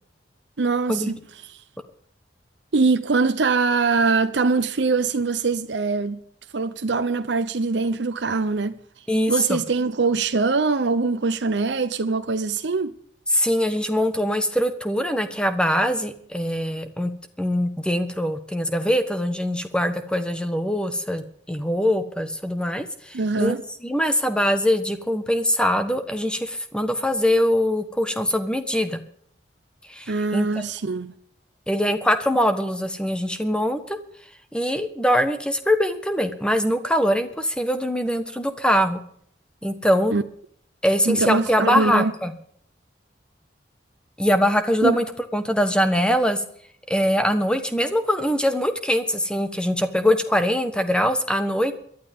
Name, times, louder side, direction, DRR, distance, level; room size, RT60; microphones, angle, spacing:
voice 1, 0.6-1.6 2.7-6.2 6.5-8.8 9.3-12.9 23.1-23.6 30.1-31.2 40.1-40.2 41.1-42.1 44.8-45.0, right 4 dB, 80° right, 0.7 m, -23 dB
voice 2, 9.1-9.6 13.3-17.1 17.4-23.6 23.8-29.0 29.9-30.6 31.7-34.0 34.5-39.0 39.6-40.1 40.8-42.3 44.2-45.0 45.3-46.4 46.9-51.7, equal, 5° left, 1.3 m, -22 dB
22.5 x 12.0 x 3.7 m
head